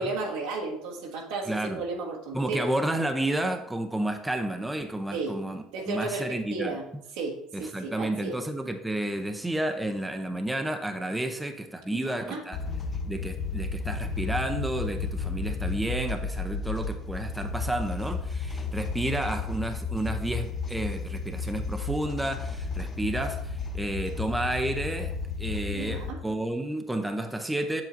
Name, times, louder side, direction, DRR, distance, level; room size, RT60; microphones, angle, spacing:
voice 1, 0.0-2.7 5.1-5.4 5.7-6.9 7.1-8.4 11.9-12.4 25.7-26.2, right 3 dB, 80° right, -1 dB, 1.5 m, -33 dB
voice 2, 1.5-1.8 2.3-6.7 7.5-12.6 13.1-27.8, right 1 dB, 10° right, 6 dB, 0.7 m, -31 dB
sound 1, 12.5-26.1, left 4 dB, 35° left, 0.8 m, -33 dB
7.6 x 7.1 x 2.6 m, 0.78 s
supercardioid pair, 100°, 0 cm